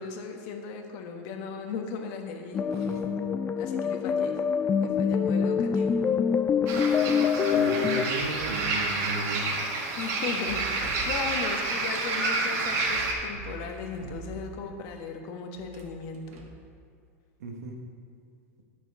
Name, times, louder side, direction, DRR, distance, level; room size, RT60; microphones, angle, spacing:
voice 1, 0.0-3.0 3.6-4.4 4.8-6.0 9.9-16.4, left 5 dB, 55° left, 3 dB, 1.3 m, -37 dB
sound 1, 2.5-8.0, left 6 dB, 20° left, 0.3 m, -25 dB
voice 2, 2.7-3.2 7.5-9.5 17.4-17.8, right 3 dB, 90° right, 2 dB, 1.4 m, -36 dB
sound 2, 5.7-6.1 8.0-8.9 10.3-11.6 12.6-14.8 15.5-16.7, right 3 dB, 65° right, 1.5 m, -44 dB
sound 3, 6.7-13.1, right 3 dB, 50° right, 1.8 m, -29 dB
10.5 x 6.3 x 4.8 m, 2.4 s
supercardioid pair, 135°, 8 cm